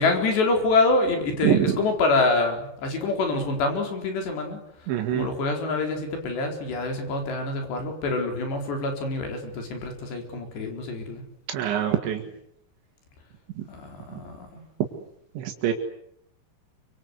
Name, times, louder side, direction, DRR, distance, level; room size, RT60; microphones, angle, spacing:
voice 1, 0.0-4.6 5.1-11.2 13.7-14.6, left 3 dB, 70° left, 4 dB, 6.5 m, -26 dB
voice 2, 1.4-1.7 4.9-5.3 11.5-12.2 13.6-13.7 14.1-14.2 15.4-15.7, right 11 dB, 85° right, 3 dB, 4.3 m, -24 dB
28.0 x 25.0 x 8.2 m, 0.75 s
omnidirectional pair, 5.1 m